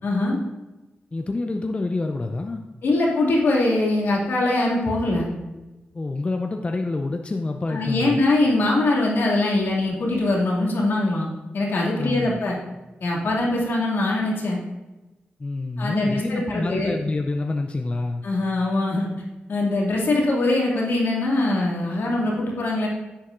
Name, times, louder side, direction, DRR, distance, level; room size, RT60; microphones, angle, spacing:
voice 1, 0.0-0.4 2.8-5.3 7.7-12.6 13.0-14.6 15.8-16.9 18.2-19.1 19.5-22.9, left 2 dB, 75° left, -3 dB, 2.3 m, -22 dB
voice 2, 1.1-2.6 5.9-8.2 12.0-12.4 15.4-18.2, left 2 dB, 30° left, 4 dB, 0.5 m, -27 dB
10.5 x 7.2 x 2.5 m, 1.1 s
cardioid pair, 80°, 4 cm